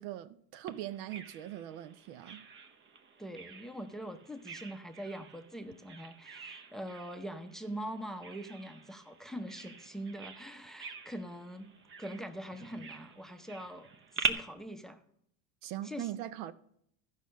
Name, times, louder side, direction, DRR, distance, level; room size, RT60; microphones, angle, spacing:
voice 1, 0.0-2.4 15.6-16.5, right 13 dB, 65° right, 0.7 m, -41 dB
Bird vocalization bird call bird song, 0.7-14.3, right 5 dB, 35° right, 0.9 m, -44 dB
voice 2, 3.2-11.7 12.0-13.9 14.1-15.0 15.8-16.1, right 1 dB, ahead, 0.7 m, -43 dB
13.5 x 5.6 x 6.3 m
supercardioid pair, 115°, 35 cm